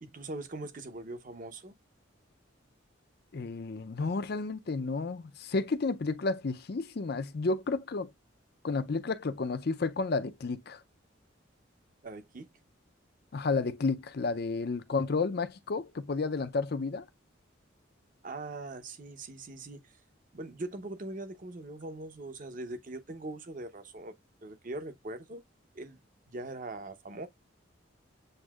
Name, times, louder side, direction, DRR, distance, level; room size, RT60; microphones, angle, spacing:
voice 1, 0.0-1.7 12.0-12.5 18.2-19.9 20.3-24.1 24.4-25.4 25.7-26.0 26.3-27.3, right 2 dB, 45° right, 0.8 m, -41 dB
voice 2, 3.3-8.1 8.6-10.8 13.3-17.0, left 3 dB, 55° left, 0.5 m, -31 dB
7.8 x 2.6 x 2.4 m
head